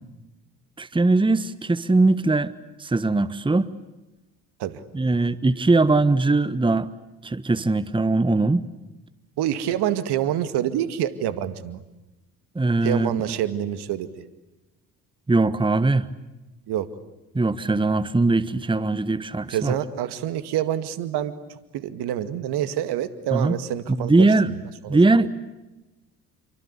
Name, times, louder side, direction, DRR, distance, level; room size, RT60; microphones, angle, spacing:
voice 1, 0.8-2.5 2.8-3.7 4.9-6.9 7.2-8.7 12.5-13.3 15.3-16.1 17.3-19.7 23.3-23.5 23.9-24.5 24.9-25.3, right 3 dB, 10° right, 15 dB, 1.3 m, -20 dB
voice 2, 9.4-11.8 12.8-14.1 16.7-16.9 19.5-21.3 21.7-25.0, right 11 dB, 60° right, 12 dB, 2.2 m, -27 dB
28.5 x 24.5 x 8.4 m, 1.0 s
hypercardioid pair, 55°, 44 cm